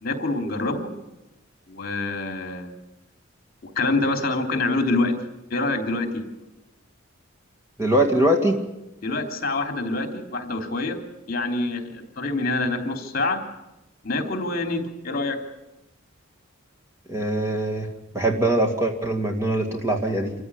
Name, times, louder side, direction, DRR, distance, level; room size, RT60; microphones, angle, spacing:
voice 1, 0.0-0.9 1.7-2.7 3.6-5.2 5.5-6.2 9.0-11.0 11.3-13.4 14.0-15.4, left 2 dB, 45° left, 5 dB, 3.3 m, -26 dB
voice 2, 7.8-8.6 17.1-17.9 18.1-20.3, right 1 dB, 15° right, 1 dB, 2.2 m, -22 dB
27.0 x 15.5 x 9.9 m, 0.96 s
head